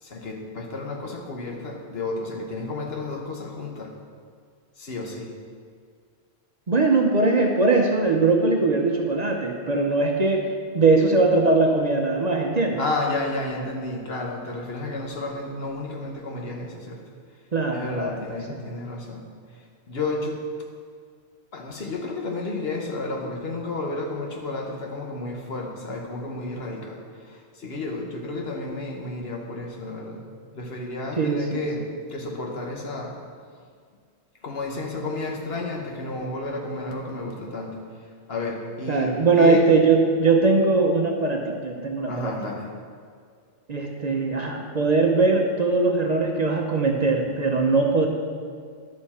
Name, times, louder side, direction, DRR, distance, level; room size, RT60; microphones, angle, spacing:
voice 1, 0.0-3.9 4.8-5.3 12.8-17.0 17.7-19.3 19.5-20.4 21.5-30.2 30.5-33.2 34.4-37.8 38.3-39.7 42.1-42.7, left 2 dB, 60° left, 1 dB, 1.3 m, -32 dB
voice 2, 6.7-12.8 17.5-18.6 31.2-31.7 38.9-42.4 43.7-48.1, right 3 dB, 45° right, 1 dB, 0.7 m, -21 dB
11.0 x 6.4 x 4.3 m, 2.1 s
omnidirectional pair, 1.2 m